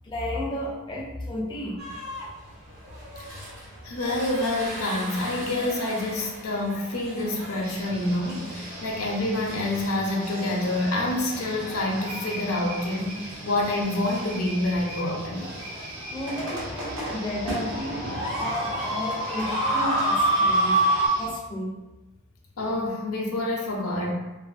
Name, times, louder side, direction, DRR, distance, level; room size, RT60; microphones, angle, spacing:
voice 1, 0.0-1.8 16.1-20.8 21.2-21.7, left 1 dB, 20° left, -2 dB, 0.4 m, -32 dB
sound 1, 1.8-2.3 2.8-21.1, right 1 dB, 65° right, 1.0 m, -31 dB
voice 2, 3.8-15.6 22.6-24.1, left 1 dB, 85° left, -1 dB, 0.6 m, -27 dB
sound 2, 7.6-21.3, right 1 dB, 45° right, 0.7 m, -42 dB
2.5 x 2.5 x 2.4 m, 1.1 s
head